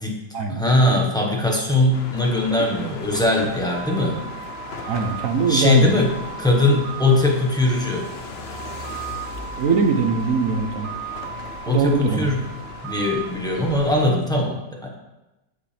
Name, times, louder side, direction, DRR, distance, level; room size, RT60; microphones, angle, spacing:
voice 1, 0.5-4.2 5.5-6.1 6.4-8.1 11.7-12.4 12.8-15.0, left 2 dB, 5° left, -2 dB, 1.1 m, -20 dB
sound 1, 1.9-14.0, left 4 dB, 50° left, 0.8 m, -38 dB
sound 2, 3.7-13.9, right 9 dB, 85° right, 1.3 m, -37 dB
voice 2, 4.9-6.2 9.6-10.9 11.7-12.3, right 5 dB, 55° right, 5 dB, 1.1 m, -22 dB
9.8 x 7.9 x 3.4 m, 1.0 s
omnidirectional pair, 1.9 m